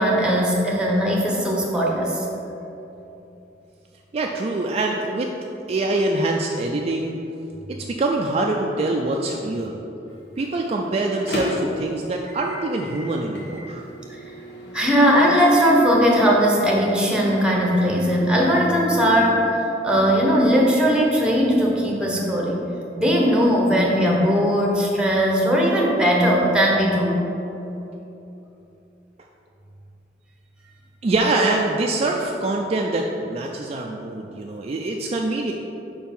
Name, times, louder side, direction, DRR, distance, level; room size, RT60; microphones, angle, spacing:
voice 1, 0.0-2.3 14.7-22.7 23.0-27.2, equal, 5° right, -2 dB, 1.0 m, -19 dB
voice 2, 4.1-5.3 5.7-7.2 7.7-9.8 10.4-13.8 31.0-35.5, right 2 dB, 35° right, 0 dB, 0.3 m, -24 dB
Microwave oven, 10.1-18.3, left 1 dB, 70° left, 1.2 m, -36 dB
5.1 x 4.4 x 5.4 m, 2.9 s
head